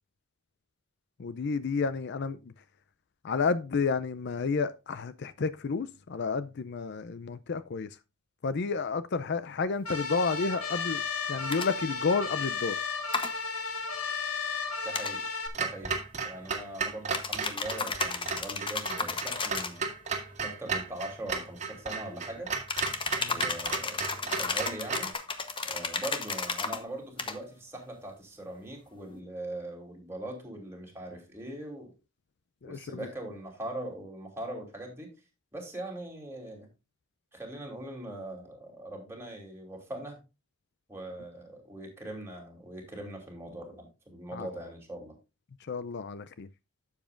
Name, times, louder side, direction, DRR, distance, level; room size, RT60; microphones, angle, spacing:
voice 1, 1.2-2.5 3.2-8.0 8.4-11.0 11.3-12.8 23.2-23.5 32.6-33.1 44.3-44.5 45.6-46.5, left 4 dB, 50° left, 0.4 m, -31 dB
sound 1, 9.9-15.5, left 5 dB, 85° left, 1.6 m, -34 dB
sound 2, 11.5-11.7 13.1-13.3 14.9-15.1 17.1-19.8 22.7-26.8 27.2-27.4, left 4 dB, 25° left, 0.9 m, -33 dB
voice 2, 14.8-15.2 15.6-16.0 16.2-19.9 20.4-22.5 23.3-25.1 25.7-31.9 32.6-35.1 35.5-36.7 37.3-40.2 40.9-45.2, right 1 dB, 10° right, 3.0 m, -41 dB
Clock, 15.5-25.1, right 5 dB, 35° right, 1.9 m, -34 dB
12.0 x 7.2 x 2.5 m
head